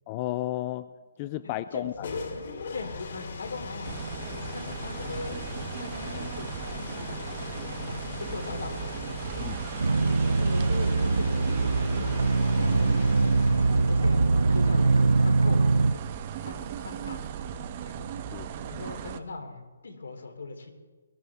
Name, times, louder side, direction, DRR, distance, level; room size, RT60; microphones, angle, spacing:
voice 1, 0.1-0.9 1.2-2.1 9.4-9.6 18.3-18.5, left 15 dB, 30° left, 14 dB, 0.4 m, -33 dB
voice 2, 1.7-2.2 2.7-4.0 4.3-7.2 7.8-8.9 9.2-9.5 10.2-13.2 13.8-14.2 14.5-15.6 15.9-16.1 16.4-17.2 17.8-18.0 18.7-20.7, left 3 dB, 80° left, 4 dB, 3.1 m, -40 dB
sound 1, 1.7-18.5, left 4 dB, 60° left, 3.1 m, -40 dB
sound 2, 3.8-19.2, right 9 dB, 35° right, 0.8 m, -36 dB
sound 3, 9.8-15.9, right 3 dB, 90° right, 0.4 m, -23 dB
22.0 x 12.5 x 3.6 m, 1.4 s
hypercardioid pair, 155°, 0 cm